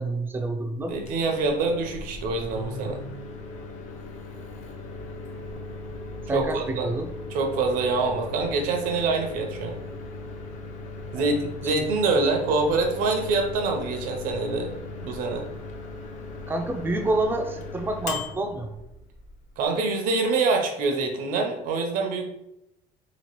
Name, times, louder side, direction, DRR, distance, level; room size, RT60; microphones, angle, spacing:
voice 1, 0.0-1.0 6.3-7.1 11.1-11.4 11.6-11.9 12.1-12.3 16.5-18.8, right 2 dB, 15° right, 5 dB, 0.4 m, -28 dB
Microwave oven, 0.8-19.7, left 2 dB, 55° left, 0.6 m, -38 dB
voice 2, 0.9-3.0 6.3-6.9 7.3-9.8 11.1-14.7 15.0-15.4 19.6-22.3, right 3 dB, 70° right, 3 dB, 0.7 m, -25 dB
3.0 x 2.8 x 2.9 m, 0.84 s
cardioid pair, 135°, 15 cm